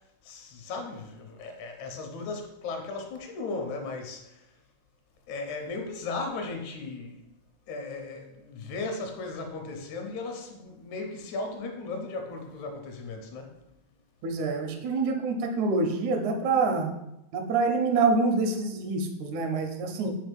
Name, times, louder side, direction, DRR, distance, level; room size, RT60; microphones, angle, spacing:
voice 1, 0.2-4.4 5.3-7.2 7.7-13.5, left 3 dB, 80° left, 2.2 m, -36 dB
voice 2, 14.2-16.9 17.3-20.1, right 3 dB, 80° right, 2.1 m, -26 dB
5.5 x 3.7 x 5.2 m
omnidirectional pair, 3.3 m